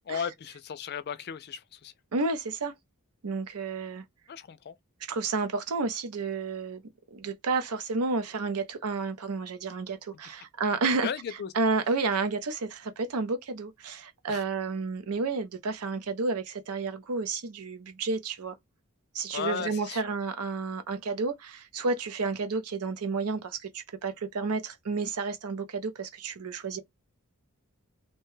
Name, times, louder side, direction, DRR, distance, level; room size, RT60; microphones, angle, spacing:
voice 1, 0.1-1.9 4.3-4.8 11.0-11.5 14.3-14.4 19.3-20.1, left 7 dB, 50° left, 0.4 m, -35 dB
voice 2, 2.1-2.7 3.2-4.0 5.1-6.8 7.1-11.1 11.5-18.6 19.1-26.8, right 4 dB, 85° right, 0.6 m, -31 dB
2.8 x 2.2 x 3.1 m
head